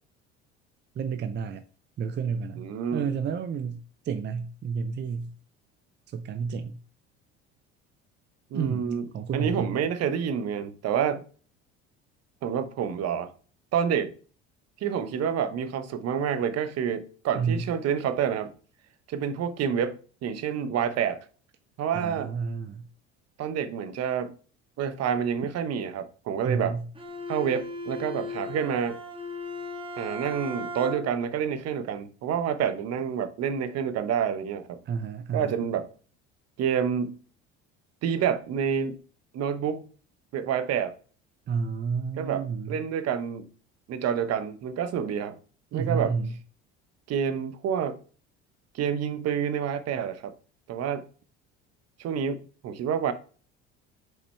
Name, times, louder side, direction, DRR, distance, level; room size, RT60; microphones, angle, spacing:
voice 1, 0.9-1.6 2.0-5.3 6.1-6.8 8.5-9.8 17.4-17.7 21.9-22.9 26.4-26.9 34.8-35.7 41.5-42.8 45.7-46.3, right 6 dB, 35° right, 0.5 m, -31 dB
voice 2, 2.6-3.1 8.5-9.0 9.3-11.2 12.4-13.3 13.7-14.1 14.8-18.5 19.1-21.2 21.8-22.3 23.4-24.3 24.8-26.7 27.3-29.0 30.0-34.8 35.3-35.9 36.6-37.2 38.0-39.0 39.3-39.8 40.3-41.0 42.2-43.5 43.9-45.3 45.7-46.1 47.1-48.0 48.7-50.3 50.7-51.1 52.0-53.1, right 8 dB, 50° right, 0.9 m, -28 dB
Bowed string instrument, 26.9-31.3, left 2 dB, 15° right, 1.4 m, -37 dB
5.7 x 5.2 x 3.2 m
hypercardioid pair, 70°, 32 cm